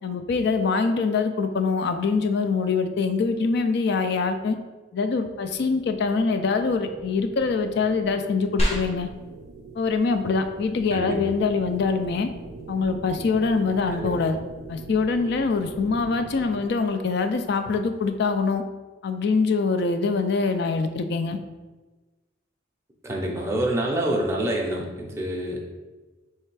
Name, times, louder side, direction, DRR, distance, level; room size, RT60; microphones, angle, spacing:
voice 1, 0.0-4.6 4.9-9.1 9.8-12.3 12.7-14.4 14.7-18.6 19.0-21.4, left 4 dB, 55° left, 7 dB, 0.4 m, -24 dB
sound 1, 5.4-16.7, right 3 dB, 70° right, 0.4 m, -43 dB
sound 2, 8.6-18.6, equal, 30° left, 0.8 m, -37 dB
voice 2, 23.0-25.6, right 1 dB, 15° right, -1 dB, 0.6 m, -27 dB
3.3 x 3.2 x 4.7 m, 1.2 s
head